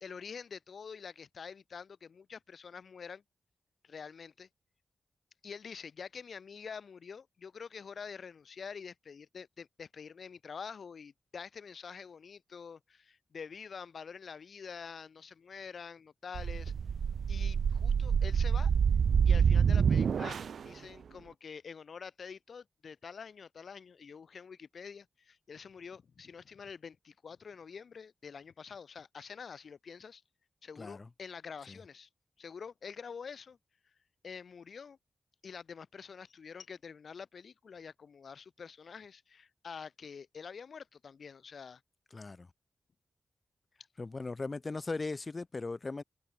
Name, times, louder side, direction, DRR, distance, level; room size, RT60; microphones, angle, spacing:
voice 1, 0.0-3.2 3.8-4.5 5.4-16.7 17.3-18.7 19.3-20.4 20.6-30.2 30.6-32.1 32.4-33.6 34.2-35.0 35.4-41.8, left 6 dB, 70° left, 1.9 m, -47 dB
sound 1, 16.3-20.7, right 7 dB, 85° right, 1.0 m, -27 dB
voice 2, 30.8-31.1 31.7-31.8 42.1-42.5 44.0-46.0, left 3 dB, 35° left, 2.9 m, -38 dB
wide cardioid pair, 110°, 0 cm